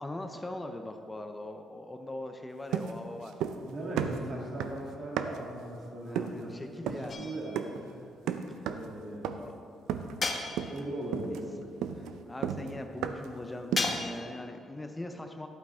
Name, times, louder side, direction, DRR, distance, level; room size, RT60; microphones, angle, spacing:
voice 1, 0.0-3.3 6.0-7.3 8.6-8.7 9.1-9.5 11.3-11.7 11.9-15.5, left 1 dB, 15° left, 5 dB, 0.6 m, -41 dB
sound 1, 2.7-3.7 4.0-5.6 6.2-6.5 6.9-7.1 7.6-7.9 8.3-8.9 9.2-9.6 9.9-10.3 10.6-10.9 11.1-13.4 13.7-14.1, right 8 dB, 90° right, 0.5 m, -34 dB
voice 2, 3.7-6.5 6.8-8.1 8.7-9.3 10.7-11.6, right 1 dB, 55° right, -3 dB, 2.6 m, -39 dB
sound 2, 7.1-7.7 10.2-11.0 13.7-14.4, left 3 dB, 40° left, 1.2 m, -34 dB
11.5 x 8.5 x 3.6 m, 2.4 s
cardioid pair, 90°, 0 cm